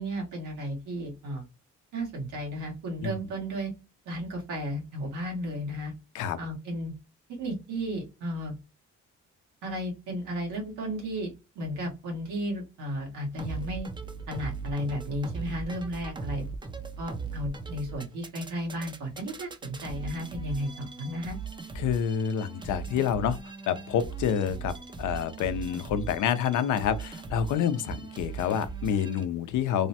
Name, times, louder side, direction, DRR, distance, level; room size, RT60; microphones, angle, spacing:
voice 1, 0.0-1.4 1.9-3.7 4.0-5.9 6.4-6.9 7.4-8.5 9.6-11.3 11.5-13.9 14.3-16.5 17.0-21.4, equal, 90° right, 1.5 m, -34 dB
sound 1, 13.4-29.2, right 5 dB, 15° right, 0.4 m, -39 dB
voice 2, 21.8-23.4 23.7-29.9, left 8 dB, 80° left, 0.5 m, -28 dB
3.1 x 2.1 x 2.7 m
cardioid pair, 90°, 30 cm